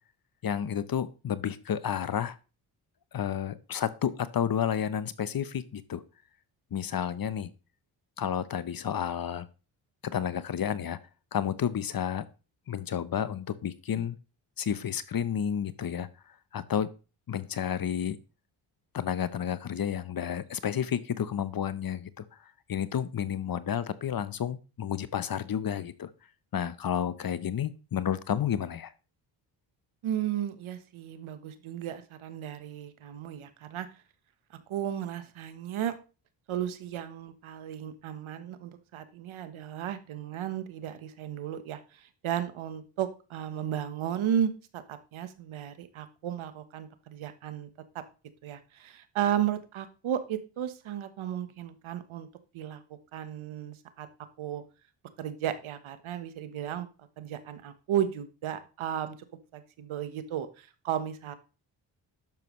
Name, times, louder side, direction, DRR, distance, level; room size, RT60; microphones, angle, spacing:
voice 1, 0.4-2.4 3.1-6.0 6.7-7.5 8.2-9.5 10.0-11.0 11.3-12.2 12.7-14.2 14.6-16.1 16.5-16.9 17.3-18.2 18.9-22.2 22.7-26.1 26.5-28.9, left 9 dB, 45° left, 15 dB, 0.9 m, -31 dB
voice 2, 30.0-33.9 34.5-35.9 36.5-47.7 47.9-48.0 48.4-52.3 52.5-54.1 54.4-54.6 55.2-56.9 57.2-59.3 59.5-61.3, right 10 dB, 70° right, 10 dB, 1.3 m, -34 dB
10.5 x 6.9 x 3.2 m, 0.33 s
supercardioid pair, 55°, 49 cm